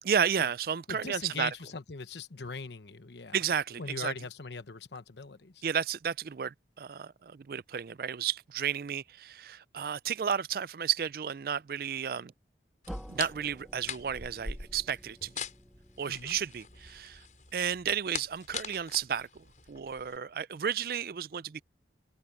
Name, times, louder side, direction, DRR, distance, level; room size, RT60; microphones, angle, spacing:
voice 1, 0.0-1.5 3.3-4.1 5.6-12.3 13.1-15.4 16.0-17.2 17.5-21.6, right 8 dB, 55° right, 0.4 m, -32 dB
voice 2, 0.9-3.4 3.8-5.6 16.1-16.4, left 4 dB, 75° left, 1.0 m, -41 dB
sound 1, 12.8-20.2, left 6 dB, 45° left, 6.5 m, -43 dB
sound 2, 12.9-17.7, equal, ahead, 2.0 m, -49 dB
head